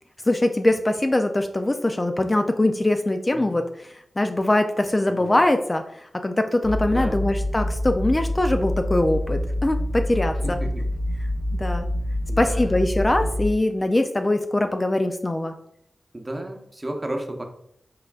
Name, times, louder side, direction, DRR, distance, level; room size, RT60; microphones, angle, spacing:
voice 1, 0.3-10.6 11.6-11.9 12.4-15.5, left 1 dB, 30° left, 6 dB, 0.4 m, -22 dB
sound 1, 6.6-13.5, left 1 dB, 70° left, 1.6 m, -26 dB
voice 2, 6.9-7.2 10.4-10.9 12.3-12.8 16.1-17.4, right 1 dB, 25° right, 3 dB, 0.8 m, -33 dB
5.7 x 3.7 x 2.3 m, 0.71 s
cardioid pair, 65°, 0 cm